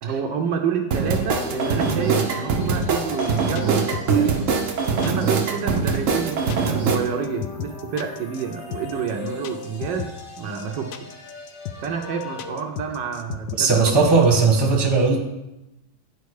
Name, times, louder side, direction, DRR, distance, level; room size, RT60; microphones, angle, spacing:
voice 1, 0.0-4.5 4.9-10.1 10.4-11.1 11.8-14.4, right 6 dB, 70° right, 3 dB, 1.4 m, -29 dB
sound 1, 0.9-7.0, right 5 dB, 55° right, 0.9 m, -22 dB
sound 2, 1.2-12.5, left 4 dB, 50° left, 2.9 m, -39 dB
sound 3, 2.8-14.5, left 11 dB, 75° left, 0.9 m, -34 dB
voice 2, 13.6-15.2, right 4 dB, 15° right, 0 dB, 1.1 m, -17 dB
9.3 x 5.2 x 4.7 m, 0.96 s
omnidirectional pair, 2.1 m